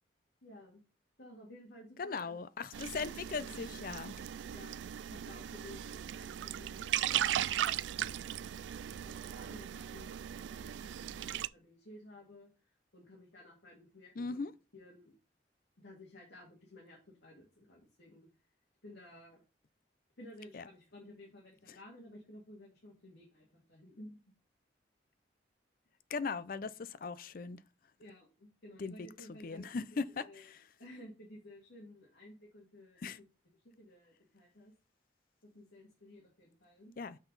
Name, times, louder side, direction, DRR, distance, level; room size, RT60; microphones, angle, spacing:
voice 1, 0.4-0.8 1.2-2.4 2.7-2.8 4.5-14.4 14.7-15.1 15.8-18.3 18.8-19.4 20.2-24.2 28.0-29.8 30.2-30.5 30.8-33.1 33.6-34.7 35.4-36.9, left 1 dB, 80° left, 2.3 m, -55 dB
voice 2, 2.0-4.1 14.2-14.5 20.5-20.6 26.1-27.6 28.8-30.6 33.0-33.2 37.0-37.2, left 4 dB, 50° left, 0.4 m, -39 dB
sound 1, 2.7-11.5, right 11 dB, 85° right, 0.3 m, -38 dB
6.3 x 5.9 x 4.0 m
head